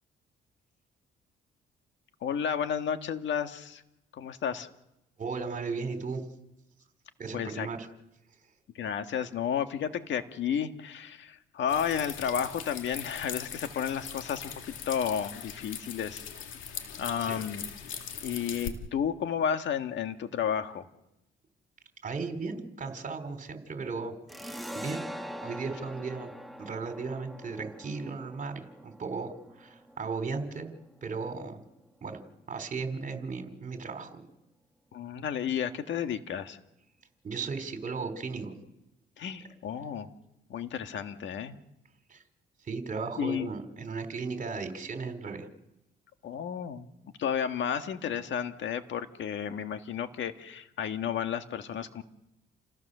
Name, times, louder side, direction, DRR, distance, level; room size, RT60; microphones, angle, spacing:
voice 1, 2.2-3.8 4.1-4.7 7.3-7.7 8.7-16.2 17.0-17.6 18.2-20.9 34.9-36.6 39.2-40.1 40.5-41.5 43.2-43.5 46.2-52.0, left 8 dB, 70° left, 7 dB, 1.7 m, -32 dB
voice 2, 5.2-6.2 7.2-7.9 17.2-17.4 22.0-25.1 25.4-26.3 26.6-30.7 31.0-31.6 32.0-32.2 32.5-34.3 37.2-38.5 42.1-42.2 42.6-45.5, right 4 dB, 40° right, 6 dB, 3.9 m, -36 dB
sound 1, 11.7-18.7, left 8 dB, 90° left, 2.2 m, -41 dB
sound 2, 24.3-31.5, equal, ahead, 1.3 m, -44 dB
29.0 x 16.0 x 6.8 m, 0.88 s
cardioid pair, 90°, 20 cm